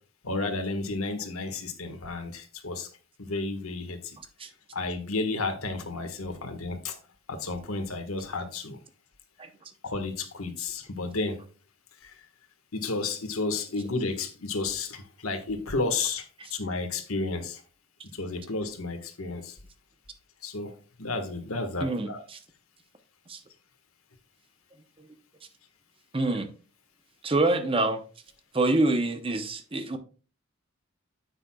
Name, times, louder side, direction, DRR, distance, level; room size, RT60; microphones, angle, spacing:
voice 1, 0.2-2.9 3.2-4.2 4.7-7.0 7.3-8.8 9.8-11.4 12.0-12.1 12.7-16.2 16.5-17.6 18.1-19.6 20.4-20.7 21.0-22.2, left 3 dB, 90° left, 1.6 m, -32 dB
voice 2, 21.8-22.4 23.3-23.4 26.1-26.5 27.2-28.0 28.5-30.0, right 2 dB, 25° right, 0.8 m, -26 dB
10.0 x 8.0 x 2.3 m
head